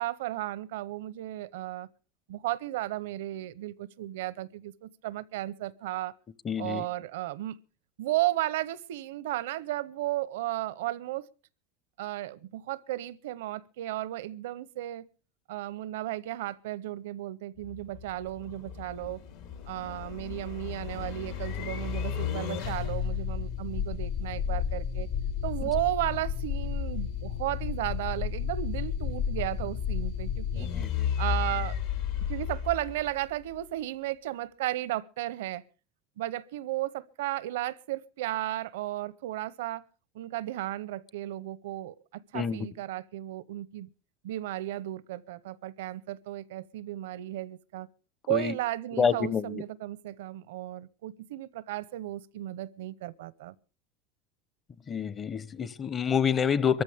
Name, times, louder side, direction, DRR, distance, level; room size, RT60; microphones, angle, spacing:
voice 1, 0.0-1.9 2.3-6.1 6.6-7.6 8.0-11.2 12.0-15.1 15.5-19.2 19.7-25.1 25.4-30.7 31.2-31.8 32.3-35.6 36.2-39.8 40.1-43.9 44.2-47.9 48.3-53.5, right 15 dB, 85° right, 0.7 m, -34 dB
voice 2, 6.4-6.8 30.6-31.1 42.3-42.7 48.3-48.5 49.0-49.6 54.9-56.8, left 7 dB, 30° left, 0.7 m, -28 dB
sound 1, 17.6-33.6, left 8 dB, 75° left, 3.3 m, -33 dB
24.0 x 14.0 x 3.4 m
supercardioid pair, 120°, 0 cm